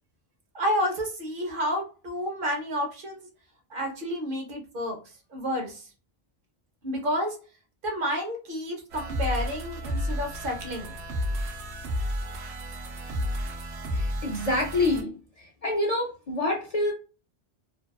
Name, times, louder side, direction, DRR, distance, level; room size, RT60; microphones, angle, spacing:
voice 1, 0.5-3.3 3.7-5.0 5.3-5.8 6.8-7.4 7.8-10.9, equal, 60° right, 2 dB, 0.8 m, -30 dB
sound 1, 8.9-15.0, equal, 90° right, 0.9 m, -32 dB
voice 2, 13.9-16.9, left 2 dB, 50° left, -2 dB, 0.5 m, -27 dB
2.6 x 2.1 x 2.2 m, 0.35 s
omnidirectional pair, 1.1 m